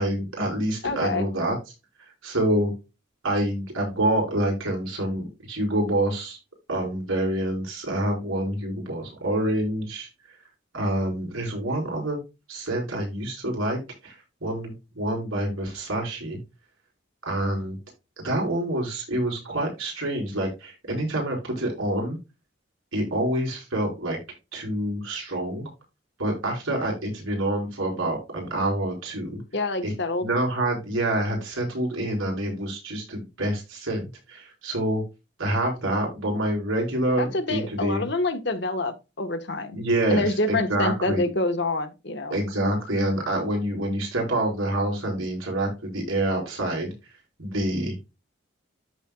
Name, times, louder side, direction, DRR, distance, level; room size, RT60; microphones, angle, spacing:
voice 1, 0.0-1.5 2.2-2.7 3.2-6.4 6.7-10.4 10.7-12.2 12.5-16.4 17.2-17.8 18.2-22.2 22.9-24.2 24.5-25.7 26.2-29.4 29.8-29.9 30.2-35.0 35.4-38.1 39.7-41.3 42.3-46.9 47.4-47.9, right 1 dB, 90° right, 5.1 m, -27 dB
voice 2, 0.8-1.3 29.5-30.3 37.2-39.8 40.1-42.4, left 2 dB, 55° left, 1.4 m, -27 dB
13.5 x 4.5 x 2.3 m
head